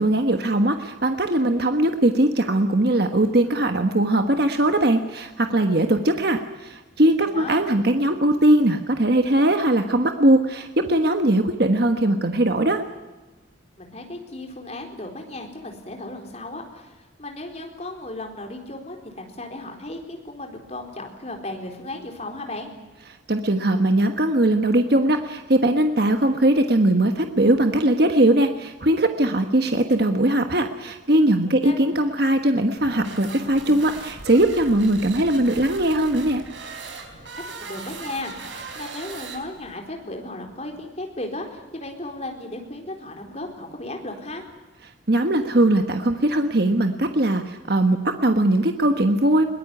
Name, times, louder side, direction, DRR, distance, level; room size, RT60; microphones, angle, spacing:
voice 1, 0.0-12.8 23.3-36.4 45.1-49.4, right 1 dB, 55° right, 6 dB, 1.3 m, -20 dB
voice 2, 13.8-22.7 31.6-31.7 37.6-44.4, left 2 dB, 35° left, 3 dB, 4.2 m, -35 dB
sound 1, 32.8-39.8, right 3 dB, 75° right, 4.7 m, -38 dB
22.0 x 21.0 x 9.8 m, 1.2 s
head